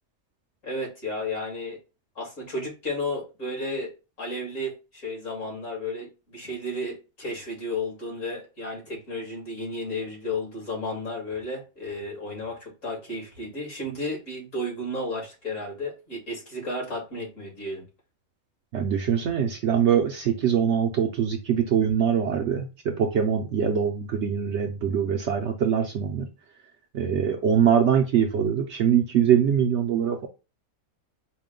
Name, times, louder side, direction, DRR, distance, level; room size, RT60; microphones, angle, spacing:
voice 1, 0.6-1.8 2.2-3.9 4.2-17.9, left 1 dB, 60° left, -3 dB, 2.5 m, -33 dB
voice 2, 18.7-26.3 26.9-30.3, right 8 dB, 65° right, 4 dB, 0.8 m, -23 dB
4.9 x 2.2 x 3.7 m, 0.30 s
omnidirectional pair, 1.5 m